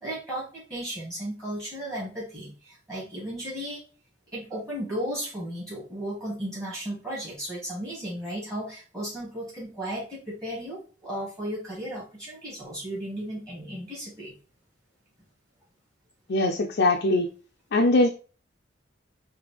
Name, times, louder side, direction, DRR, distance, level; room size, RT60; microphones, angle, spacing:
voice 1, 0.0-3.8 4.3-14.3, right 1 dB, 20° right, -7 dB, 2.3 m, -35 dB
voice 2, 16.3-17.3 17.7-18.1, left 2 dB, 55° left, 1 dB, 0.5 m, -21 dB
5.0 x 2.8 x 3.4 m, 0.36 s
head